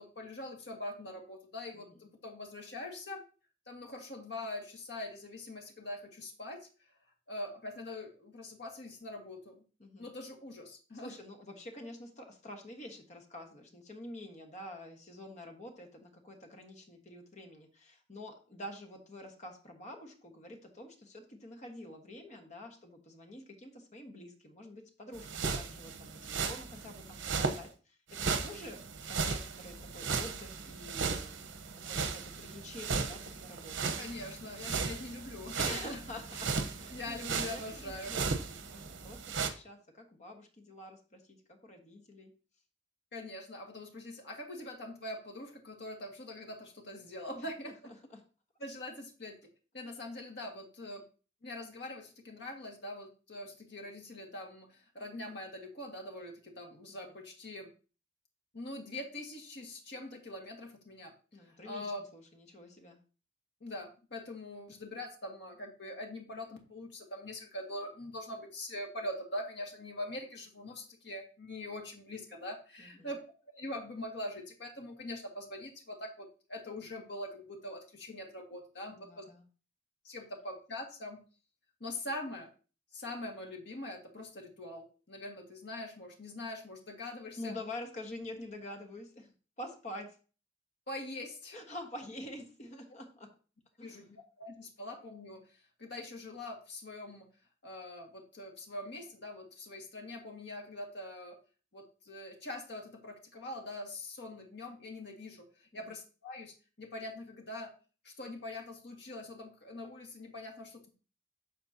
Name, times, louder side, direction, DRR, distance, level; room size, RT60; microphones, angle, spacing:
voice 1, 0.0-3.2 3.7-6.7 7.3-9.6 10.0-11.2 34.0-36.0 36.9-38.2 43.1-47.9 48.6-51.0 51.4-57.7 58.5-61.1 61.4-62.0 63.6-73.2 73.6-79.3 80.0-81.2 81.8-82.5 82.9-87.5 90.9-91.6 93.8-97.3 97.6-101.4 101.7-107.7 108.0-110.9, left 1 dB, 60° left, 2 dB, 1.8 m, -43 dB
voice 2, 10.9-28.8 29.1-31.4 31.8-33.9 35.6-42.3 47.3-47.4 48.1-48.2 56.9-57.0 61.3-61.9 62.1-63.0 72.8-73.1 78.9-79.4 87.4-90.2 91.5-93.3 93.8-94.0, left 1 dB, 40° left, 4 dB, 1.4 m, -47 dB
sound 1, 25.1-27.6 28.1-39.5, right 5 dB, 80° right, 0.9 m, -36 dB
13.0 x 4.4 x 2.8 m, 0.35 s
head